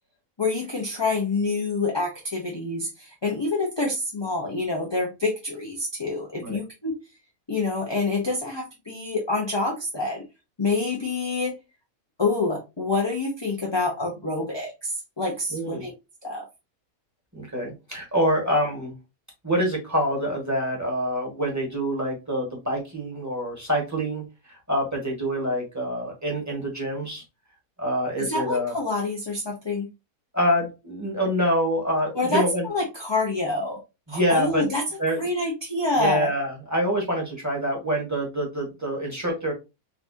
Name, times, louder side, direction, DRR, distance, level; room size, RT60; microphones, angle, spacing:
voice 1, 0.4-6.9 7.5-10.2 10.6-11.5 12.2-15.9 16.2-16.4 28.2-29.9 32.1-33.8 34.1-34.8 35.2-36.3, left 3 dB, 20° left, -1 dB, 0.7 m, -27 dB
voice 2, 15.5-15.8 17.3-18.9 19.4-24.2 24.7-27.2 27.8-28.7 30.3-32.6 34.1-34.6 35.0-35.2 36.0-39.5, equal, 10° right, -1 dB, 1.7 m, -26 dB
4.1 x 3.8 x 2.7 m, 0.25 s
omnidirectional pair, 1.6 m